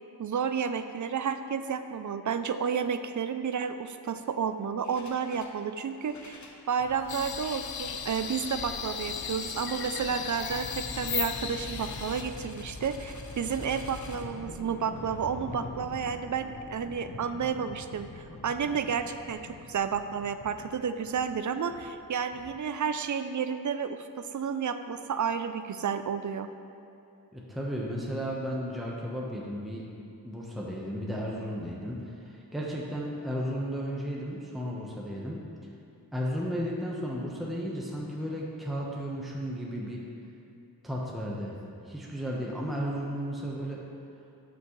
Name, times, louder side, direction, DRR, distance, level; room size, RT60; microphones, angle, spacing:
voice 1, 0.2-6.4 6.7-26.5, right 6 dB, 50° right, 10 dB, 0.4 m, -31 dB
sound 1, 4.8-5.6 5.9-22.9, left 3 dB, 50° left, 0.9 m, -44 dB
sound 2, 7.1-12.2, left 7 dB, 70° left, 0.6 m, -36 dB
voice 2, 27.3-29.8 30.2-35.4 36.1-40.0 40.8-41.6 41.8-43.8, equal, ahead, -4 dB, 1.0 m, -34 dB
12.0 x 6.1 x 3.1 m, 2.7 s
wide cardioid pair, 100°, 39 cm